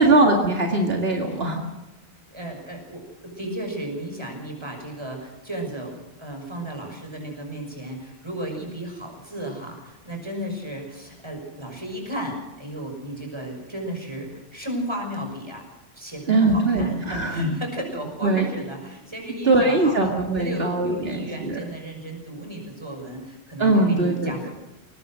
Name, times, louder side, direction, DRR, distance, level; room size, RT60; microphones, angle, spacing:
voice 1, 0.0-1.6 16.3-17.5 18.2-18.4 19.4-21.6 23.6-24.3, right 2 dB, 70° right, 1 dB, 2.3 m, -21 dB
voice 2, 2.3-15.6 15.9-24.5, right 1 dB, 25° right, 2 dB, 6.0 m, -34 dB
22.0 x 19.0 x 6.3 m, 1.0 s
omnidirectional pair, 1.0 m